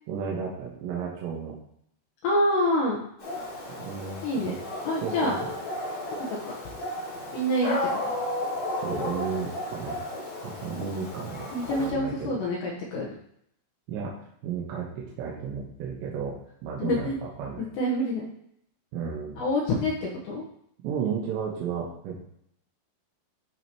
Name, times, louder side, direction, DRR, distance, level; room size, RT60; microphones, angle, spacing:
voice 1, 0.1-1.6 3.8-4.6 5.0-5.3 8.8-10.0 10.4-12.4 13.9-14.1 14.4-16.3 16.6-17.7 18.9-19.4 20.8-22.2, right 6 dB, 75° right, -4 dB, 3.2 m, -33 dB
voice 2, 2.2-3.0 4.2-4.5 4.8-5.4 6.3-6.4 7.3-7.8 8.2-8.3 11.5-13.1 16.8-17.2 17.6-18.3 19.4-20.4, left 1 dB, 70° left, -4 dB, 3.2 m, -26 dB
Dog, 3.2-11.9, left 1 dB, 45° left, 2.2 m, -34 dB
12.5 x 5.0 x 3.0 m, 0.71 s
omnidirectional pair, 5.5 m